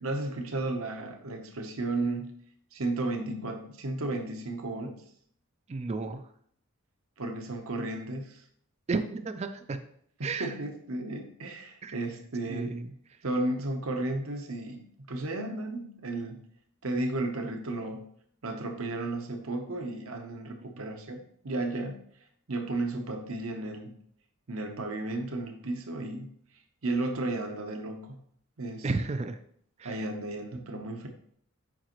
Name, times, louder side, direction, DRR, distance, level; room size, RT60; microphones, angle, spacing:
voice 1, 0.0-2.4 2.7-5.0 7.2-8.4 10.2-12.8 13.2-16.4 16.8-18.1 18.4-22.0 22.5-23.9 24.5-26.3 26.8-28.2 28.6-28.9 29.8-31.1, right 2 dB, 70° right, 4 dB, 0.8 m, -33 dB
voice 2, 5.7-6.2 8.9-9.8 10.2-10.5 11.8-12.0 12.5-12.9 28.8-29.4 29.8-30.0, right 3 dB, 30° right, 8 dB, 0.3 m, -32 dB
7.5 x 5.1 x 3.0 m, 0.64 s
head